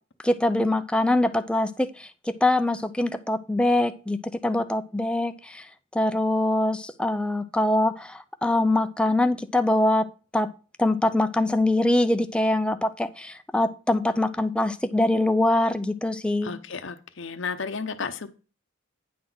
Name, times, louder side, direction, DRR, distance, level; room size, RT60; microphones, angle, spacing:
voice 1, 0.2-10.1 10.3-10.5 10.8-16.5, left 1 dB, 5° left, 9 dB, 0.4 m, -23 dB
voice 2, 16.4-18.3, left 5 dB, 60° left, 8 dB, 0.7 m, -33 dB
9.4 x 3.9 x 6.0 m, 0.34 s
head